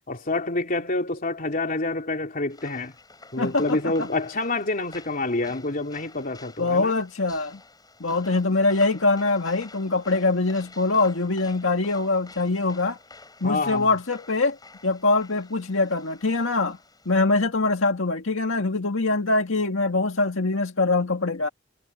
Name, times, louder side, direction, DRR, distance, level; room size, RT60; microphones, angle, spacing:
voice 1, 0.1-2.9 3.3-6.9 13.4-13.9, left 2 dB, 45° left, 3.4 m, -27 dB
sound 1, 2.5-17.1, left 3 dB, 20° left, 7.0 m, -49 dB
voice 2, 3.4-4.1 6.6-7.6 8.0-13.0 13.4-14.6 14.8-16.8 17.1-21.5, left 3 dB, 80° left, 2.0 m, -23 dB
head